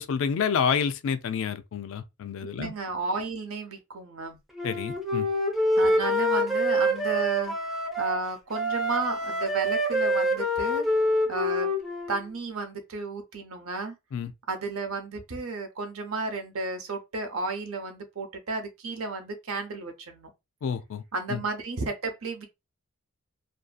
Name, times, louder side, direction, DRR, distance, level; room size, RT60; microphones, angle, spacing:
voice 1, 0.0-2.7 4.6-5.3 14.1-14.3 20.6-21.0 21.3-21.4, left 6 dB, 65° left, 0.4 m, -29 dB
voice 2, 2.4-4.4 5.8-10.8 11.3-11.7 12.1-14.0 14.5-20.3 21.1-22.5, right 3 dB, 75° right, 0.7 m, -33 dB
Wind instrument woodwind instrument, 4.6-8.2 8.5-12.2, equal, ahead, 0.5 m, -26 dB
2.6 x 2.5 x 2.3 m
head